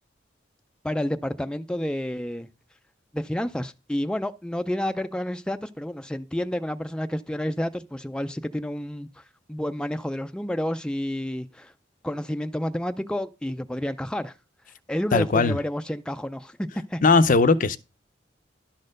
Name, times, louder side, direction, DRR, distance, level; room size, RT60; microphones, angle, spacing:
voice 1, 0.8-2.5 3.1-9.2 9.5-11.7 12.0-14.3 14.9-17.0, left 1 dB, 5° left, 0.4 m, -30 dB
voice 2, 15.1-15.6 17.0-17.8, left 3 dB, 45° left, 0.6 m, -18 dB
11.5 x 4.3 x 6.4 m
head